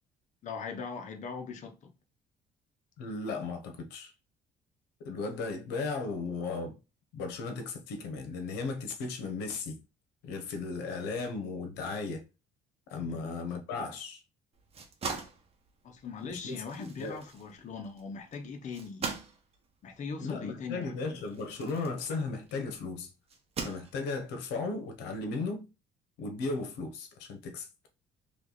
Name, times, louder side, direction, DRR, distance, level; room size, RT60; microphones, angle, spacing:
voice 1, 0.4-1.9 13.0-13.2 15.8-19.2 19.8-21.2, left 5 dB, 45° left, 0.9 m, -40 dB
voice 2, 3.0-4.1 5.0-6.7 7.1-9.8 10.2-12.2 12.9-14.2 16.3-17.2 20.2-23.1 23.6-25.7 26.2-27.7, left 3 dB, 90° left, 1.0 m, -36 dB
sound 1, 14.5-22.6 23.3-24.3, right 4 dB, 35° right, 1.1 m, -42 dB
3.3 x 3.1 x 4.0 m
cardioid pair, 110°, 17 cm